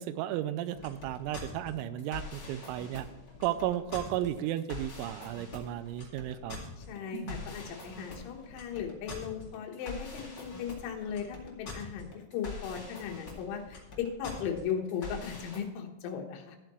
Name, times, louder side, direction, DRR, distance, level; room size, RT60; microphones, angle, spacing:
voice 1, 0.0-3.1 3.4-6.6, right 12 dB, 90° right, 13 dB, 3.4 m, -34 dB
sound 1, 0.7-15.6, left 3 dB, 45° left, 1.4 m, -44 dB
voice 2, 6.8-16.6, left 7 dB, 75° left, 2 dB, 3.5 m, -37 dB
sound 2, 7.1-11.1 11.4-11.5, right 3 dB, 55° right, 2.6 m, -49 dB
13.5 x 9.2 x 3.1 m, 1.1 s
omnidirectional pair, 6.0 m